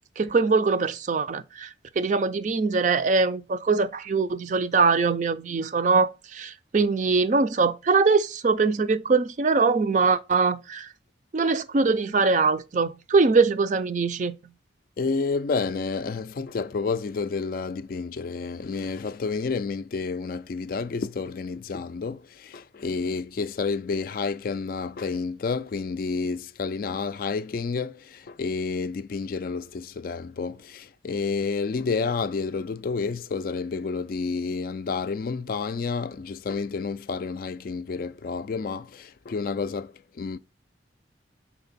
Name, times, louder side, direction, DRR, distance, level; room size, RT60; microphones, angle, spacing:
voice 1, 0.2-10.9 11.3-14.3, right 4 dB, 40° right, 0.4 m, -22 dB
voice 2, 15.0-40.4, left 4 dB, 50° left, 0.3 m, -30 dB
5.8 x 4.4 x 4.0 m
head